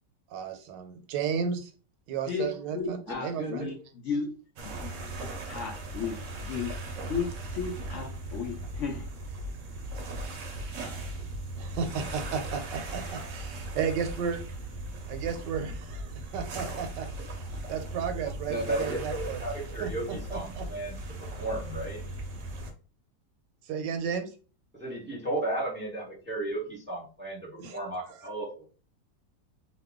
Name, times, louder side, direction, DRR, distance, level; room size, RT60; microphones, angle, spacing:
voice 1, 0.3-1.7 2.1-3.7 11.6-14.4 15.1-19.5 19.8-20.6 23.6-24.3 27.6-27.8 28.1-28.3, right 6 dB, 85° right, 7 dB, 1.3 m, -34 dB
voice 2, 2.3-3.8 4.0-4.3 4.6-6.7 7.1-9.1, left 5 dB, 90° left, 1 dB, 0.6 m, -34 dB
voice 3, 3.4-3.7 18.5-20.9 21.4-22.0 24.7-28.6, right 2 dB, 10° right, -4 dB, 0.8 m, -34 dB
sound 1, 4.6-22.7, right 1 dB, 65° right, 0.8 m, -38 dB
2.9 x 2.2 x 3.5 m, 0.36 s
omnidirectional pair, 1.8 m